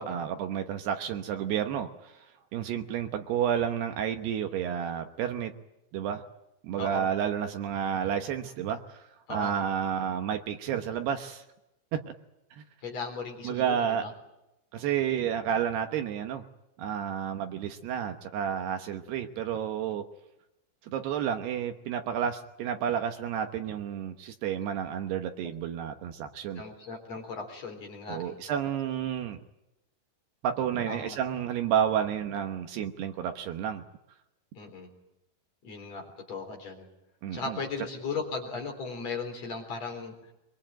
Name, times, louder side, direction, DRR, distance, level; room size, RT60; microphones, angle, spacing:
voice 1, 0.0-2.3 2.5-5.5 5.9-6.2 6.6-9.0 9.3-11.4 11.9-12.1 12.5-12.6 13.4-14.0 14.7-16.4 16.8-20.0 20.8-26.6 28.1-29.4 30.4-33.8 37.2-37.6, right 9 dB, 70° right, 6 dB, 2.7 m, -31 dB
voice 2, 6.8-7.1 9.3-9.5 12.8-14.1 26.5-28.4 30.9-31.2 34.5-34.9 35.6-36.9 37.3-40.3, left 4 dB, 35° left, 3 dB, 4.3 m, -37 dB
23.5 x 23.0 x 9.0 m, 0.91 s
omnidirectional pair, 5.7 m